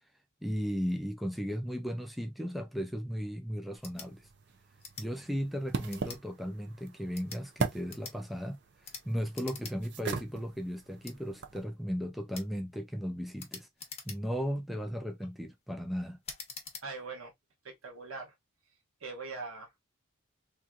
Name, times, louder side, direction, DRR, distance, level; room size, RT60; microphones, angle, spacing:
voice 1, 0.4-4.3 5.0-8.6 9.0-13.7 14.0-16.2, equal, ahead, 0.5 m, -36 dB
sound 1, 3.8-4.1 4.8-5.1 5.9-6.2 7.0-7.4 7.9-8.2 8.8-9.0 9.3-9.8 10.1-10.2 11.0-11.2 12.3-12.5 13.4-14.4 15.0-15.3 16.2-16.9, left 5 dB, 30° left, 1.0 m, -45 dB
sound 2, 3.9-11.6, right 4 dB, 55° right, 0.5 m, -40 dB
voice 2, 16.8-17.3 17.6-18.3 19.0-19.8, right 4 dB, 75° right, 1.3 m, -42 dB
3.7 x 2.8 x 2.3 m
head